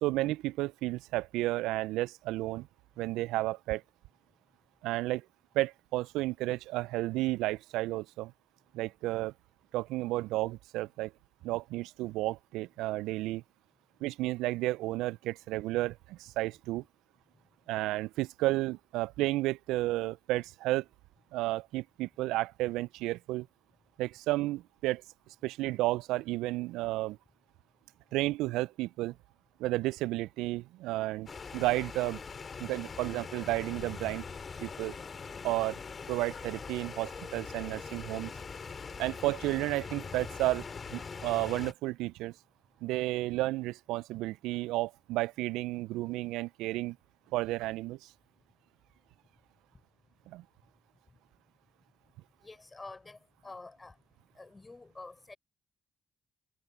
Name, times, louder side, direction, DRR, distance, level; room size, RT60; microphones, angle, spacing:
voice 1, 0.0-2.7 3.0-3.8 4.8-5.2 5.5-8.3 8.7-9.3 9.7-11.1 11.4-13.4 14.0-16.8 17.7-20.9 21.3-23.5 24.0-25.0 25.4-27.2 28.1-29.2 29.6-31.3 31.5-32.2 32.6-34.2 34.6-35.0 35.4-35.8 36.1-38.3 39.0-40.6 40.9-42.3 42.8-47.0 47.3-48.1 50.3-50.4, right 18 dB, 80° right, 0.4 m, -32 dB
sound 1, 31.3-41.7, left 5 dB, 45° left, 3.3 m, -42 dB
voice 2, 52.4-54.0 54.4-55.4, left 3 dB, 30° left, 4.7 m, -48 dB
hypercardioid pair, 40°, 0 cm